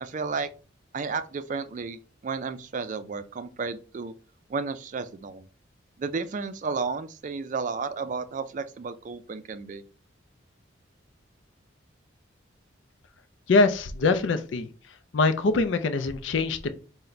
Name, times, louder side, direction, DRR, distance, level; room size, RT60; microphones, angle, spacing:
voice 1, 0.0-0.5 0.9-4.1 4.5-5.5 6.0-9.8, right 4 dB, 40° right, 12 dB, 0.3 m, -32 dB
voice 2, 13.5-14.7 15.1-16.7, left 3 dB, 70° left, 10 dB, 0.4 m, -23 dB
3.9 x 2.1 x 4.3 m, 0.36 s
head